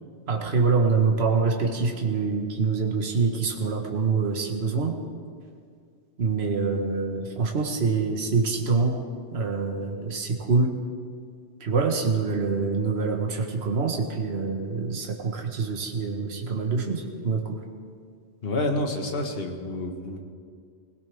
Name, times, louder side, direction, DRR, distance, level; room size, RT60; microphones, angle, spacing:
voice 1, 0.3-4.9 6.2-9.0 9.3-10.7 11.6-17.6, right 4 dB, 60° right, 2 dB, 1.6 m, -25 dB
voice 2, 18.4-20.2, left 2 dB, 55° left, 3 dB, 1.7 m, -28 dB
24.0 x 17.0 x 3.5 m, 2.1 s
omnidirectional pair, 1.2 m